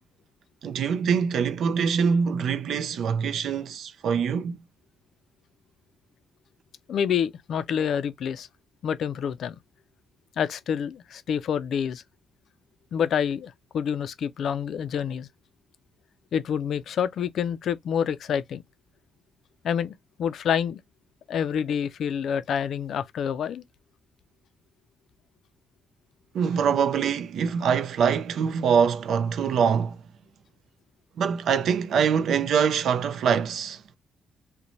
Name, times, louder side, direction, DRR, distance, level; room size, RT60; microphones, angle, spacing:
voice 1, 0.6-4.6 26.3-30.0 31.2-34.0, right 6 dB, 70° right, 0.4 m, -24 dB
voice 2, 6.9-8.5 8.8-9.6 10.4-12.0 12.9-15.3 16.3-18.6 19.6-20.8 21.3-23.6, left 8 dB, 65° left, 0.3 m, -27 dB
2.5 x 2.1 x 2.9 m
cardioid pair, 90°, 0 cm